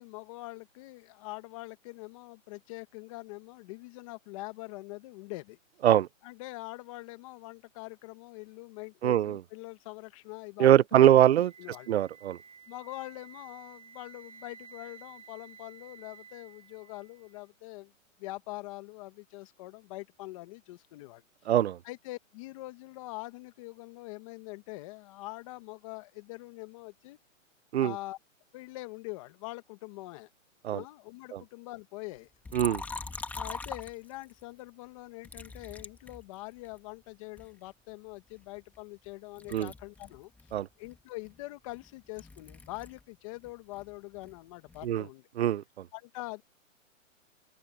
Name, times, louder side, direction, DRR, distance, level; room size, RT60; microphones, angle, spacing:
voice 1, 0.0-5.6 6.2-11.2 11.6-11.9 12.7-17.9 18.2-21.2 21.8-27.2 27.7-28.2 28.5-30.3 30.7-32.3 32.6-32.8 33.3-40.3 40.8-45.2 45.9-46.4, left 21 dB, 25° left, 1.4 m, -44 dB
voice 2, 9.0-9.4 10.6-11.5 11.9-12.4 21.5-21.8 27.7-27.9 30.6-30.8 31.3-31.4 32.5-32.8 39.5-39.7 40.5-40.7 44.8-45.1 45.4-45.8, right 11 dB, 55° right, 0.5 m, -23 dB
Wind instrument woodwind instrument, 11.4-17.4, right 6 dB, 15° right, 3.1 m, -53 dB
Liquid, 32.4-34.4 35.2-36.8 37.4-39.1 39.4-43.1 43.3-45.0, left 3 dB, 5° left, 2.0 m, -43 dB
hypercardioid pair, 165°, 40 cm